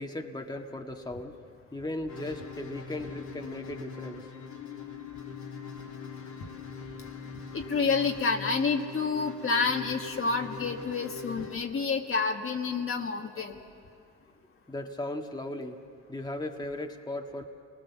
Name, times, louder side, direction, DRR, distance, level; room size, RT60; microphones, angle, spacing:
voice 1, 0.0-1.4 1.7-4.3 14.7-15.8 16.1-17.4, left 1 dB, 15° left, 2 dB, 1.7 m, -37 dB
sound 1, 2.1-11.5, left 5 dB, 70° left, 2.4 m, -42 dB
voice 2, 7.5-13.5, left 4 dB, 45° left, 2 dB, 1.7 m, -29 dB
29.0 x 20.0 x 7.2 m, 2.3 s
cardioid pair, 90°, 30 cm